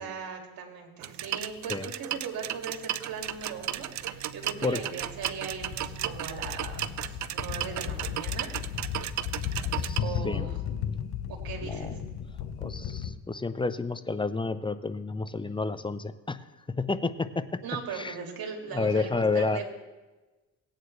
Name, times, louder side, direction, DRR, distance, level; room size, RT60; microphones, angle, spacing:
voice 1, 0.0-6.8 7.1-8.5 9.3-9.6 10.0-10.6 11.3-12.0 17.6-19.6, right 5 dB, 70° right, 2 dB, 2.4 m, -39 dB
sound 1, 1.0-10.0, right 11 dB, 50° right, 0.5 m, -35 dB
sound 2, 3.2-3.3 3.7-13.1, left 9 dB, 80° left, 0.9 m, -35 dB
voice 2, 9.7-10.5 11.6-12.0 12.6-16.4 16.8-17.6 17.9-18.1 18.7-19.6, left 3 dB, 15° left, 12 dB, 0.6 m, -30 dB
17.5 x 9.0 x 3.2 m, 1.2 s
cardioid pair, 85°, 37 cm